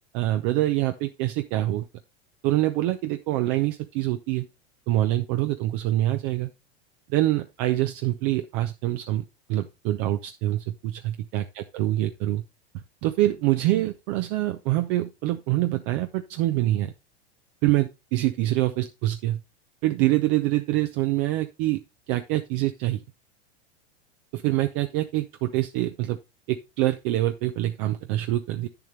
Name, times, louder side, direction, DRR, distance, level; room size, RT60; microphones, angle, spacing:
voice 1, 0.1-1.9 2.4-4.5 4.9-6.5 7.1-12.4 13.0-16.9 17.6-19.4 19.8-21.8 22.1-23.0 24.3-26.2 26.5-28.7, right 15 dB, 55° right, 8 dB, 0.7 m, -25 dB
8.6 x 7.1 x 3.2 m, 0.25 s
hypercardioid pair, 105°, 32 cm